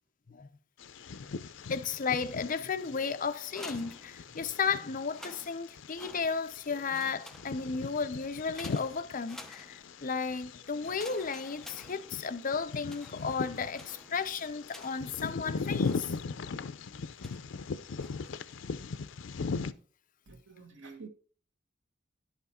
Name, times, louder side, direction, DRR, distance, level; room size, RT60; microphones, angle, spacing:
Bird vocalization bird call bird song, 0.8-19.7, left 4 dB, 85° left, 0.5 m, -39 dB
voice 1, 1.7-16.2 16.9-17.1, left 5 dB, 45° left, 0.6 m, -34 dB
sound 1, 3.4-4.6 5.0-6.6 6.9-7.9 8.5-10.1 10.8-12.5 12.8-15.2 15.8-16.5 17.2-17.6 18.0-18.5, left 1 dB, 5° left, 0.8 m, -51 dB
voice 2, 20.3-21.1, right 4 dB, 75° right, 1.6 m, -48 dB
10.5 x 5.9 x 4.3 m
head